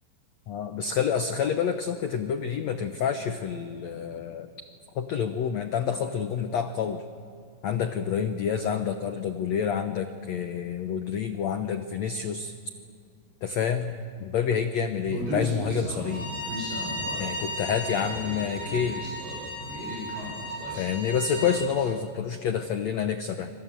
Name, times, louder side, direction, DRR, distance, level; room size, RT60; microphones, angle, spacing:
voice 1, 0.5-4.5 4.9-7.0 7.6-12.5 13.4-13.9 14.2-16.3 17.2-19.0 20.8-23.5, left 7 dB, 85° left, 7 dB, 1.5 m, -28 dB
Human voice, 15.1-21.9, equal, 75° right, 9.7 m, -37 dB
Bowed string instrument, 16.0-21.6, left 1 dB, 35° right, 8.8 m, -35 dB
26.5 x 26.0 x 7.6 m, 2.4 s
omnidirectional pair, 4.6 m